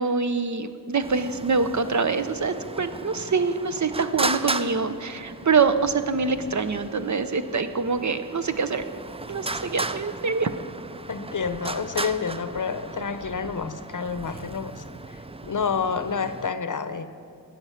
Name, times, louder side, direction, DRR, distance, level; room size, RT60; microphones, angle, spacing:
voice 1, 0.0-8.8 9.3-10.5, right 4 dB, 55° right, 11 dB, 0.7 m, -25 dB
Traffic noise roadway noise, 1.0-16.5, right 3 dB, 15° right, 0.4 m, -36 dB
voice 2, 11.1-17.1, left 5 dB, 60° left, 11 dB, 0.7 m, -29 dB
13.0 x 8.7 x 5.8 m, 2.6 s
wide cardioid pair, 70°, 35 cm